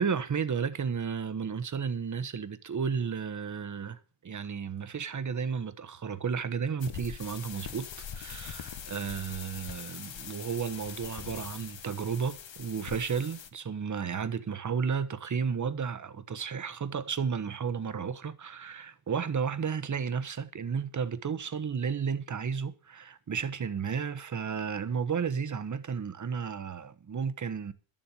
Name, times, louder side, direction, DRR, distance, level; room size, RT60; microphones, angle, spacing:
voice 1, 0.0-7.9 8.1-27.7, right 6 dB, 35° right, 1.2 m, -33 dB
sound 1, 6.8-13.5, left 8 dB, 65° left, 1.5 m, -42 dB
12.5 x 7.4 x 8.3 m
wide cardioid pair, 135°, 49 cm